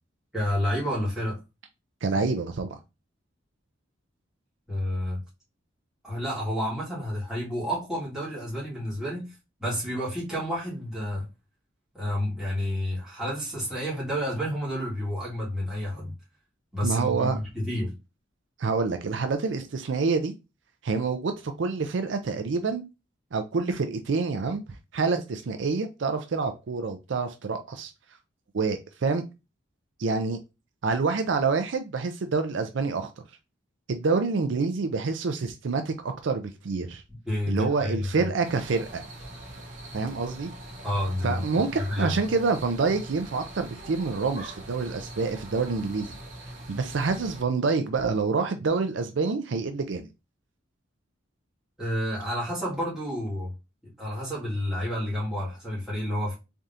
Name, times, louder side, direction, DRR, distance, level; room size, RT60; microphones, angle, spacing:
voice 1, 0.3-1.4 4.7-5.2 6.0-9.3 9.6-11.3 11.9-16.1 16.7-17.9 37.1-38.2 40.8-41.4 41.8-42.2 51.8-53.5 54.0-56.4, equal, 5° right, 2.2 m, -30 dB
voice 2, 2.0-2.8 16.8-17.4 18.6-20.3 20.8-22.8 23.3-24.6 24.9-27.9 28.5-29.2 30.0-30.4 30.8-33.1 33.9-37.0 37.5-39.0 39.9-40.5 41.2-46.2 46.7-50.0, right 4 dB, 70° right, 0.5 m, -27 dB
sound 1, 38.4-47.4, right 1 dB, 40° right, 1.4 m, -42 dB
3.7 x 3.4 x 2.7 m
head